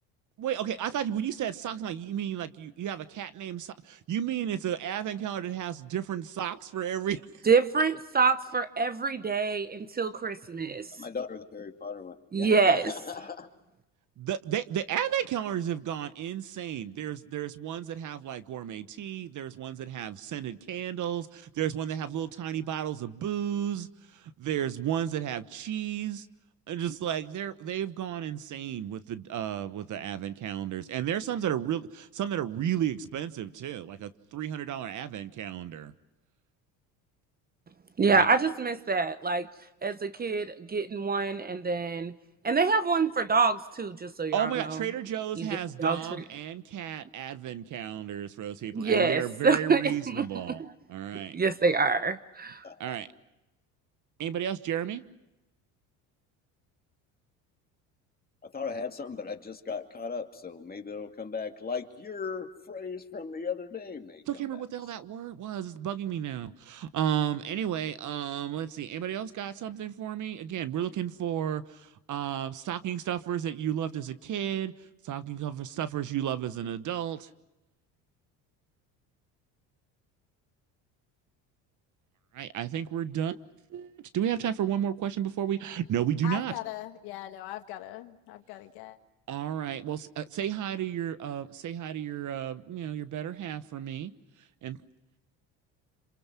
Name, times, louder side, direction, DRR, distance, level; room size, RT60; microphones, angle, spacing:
voice 1, 0.4-7.2 14.2-26.3 26.7-35.9 38.1-38.3 44.3-50.6 50.9-51.3 52.8-53.1 54.2-55.0 64.3-74.7 75.0-77.3 82.3-83.4 83.7-86.5 89.3-94.1 94.6-94.8, right 10 dB, 50° right, 13 dB, 1.2 m, -33 dB
voice 2, 7.5-10.9 12.3-12.9 38.0-39.5 39.8-42.1 42.4-44.8 45.4-45.5 45.8-46.1 48.7-50.3 50.6-50.7 51.1-52.6, right 4 dB, 25° right, 13 dB, 0.9 m, -26 dB
voice 3, 11.0-13.5 52.6-53.0 58.4-64.6, left 5 dB, 25° left, 4 dB, 2.4 m, -37 dB
voice 4, 86.2-89.0, left 14 dB, 75° left, 7 dB, 1.9 m, -40 dB
27.5 x 26.5 x 6.1 m, 0.95 s
supercardioid pair, 100°, 38 cm